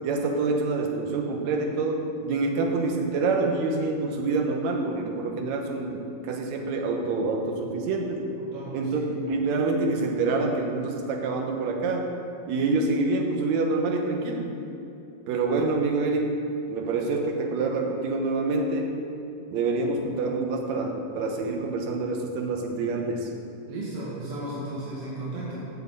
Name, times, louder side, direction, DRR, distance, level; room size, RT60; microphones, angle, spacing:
voice 1, 0.0-8.3 8.7-12.1 12.4-14.6 15.3-16.3 16.7-18.9 19.5-23.3, right 3 dB, 65° right, 2 dB, 2.3 m, -26 dB
voice 2, 8.4-9.0 23.7-25.7, right 1 dB, 45° right, -9 dB, 3.1 m, -35 dB
14.5 x 4.9 x 8.2 m, 2.8 s
omnidirectional pair, 3.8 m